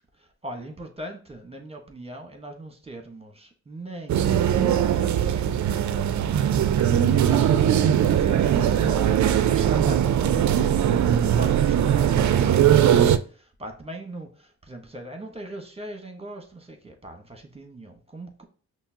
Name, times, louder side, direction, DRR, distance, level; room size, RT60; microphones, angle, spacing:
voice 1, 0.4-4.4 4.9-6.1 7.2-10.8 11.4-13.0 13.6-14.3 14.7-18.4, right 1 dB, 15° right, 4 dB, 1.0 m, -40 dB
sound 1, 4.1-13.2, right 9 dB, 45° right, 0.4 m, -20 dB
5.6 x 2.1 x 2.7 m, 0.41 s
supercardioid pair, 50°, 41 cm